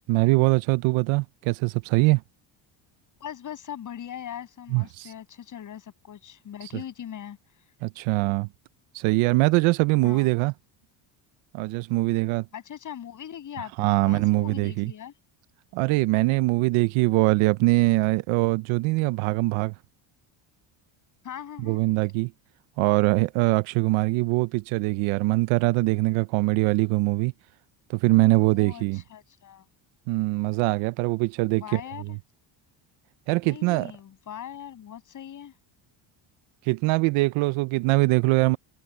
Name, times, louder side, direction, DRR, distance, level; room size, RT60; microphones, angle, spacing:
voice 1, 0.1-2.2 4.7-5.1 7.8-8.5 8.9-10.5 11.5-12.5 13.8-14.9 15.7-19.7 21.6-22.3 22.8-27.3 27.9-29.0 30.1-31.8 33.3-33.9 36.7-38.6, right 22 dB, 85° right, 0.7 m, -22 dB
voice 2, 3.2-7.4 10.0-10.3 12.5-15.1 21.2-21.8 28.5-29.6 31.5-32.2 33.4-35.5, left 9 dB, 40° left, 7.2 m, -40 dB
cardioid pair, 160°, 47 cm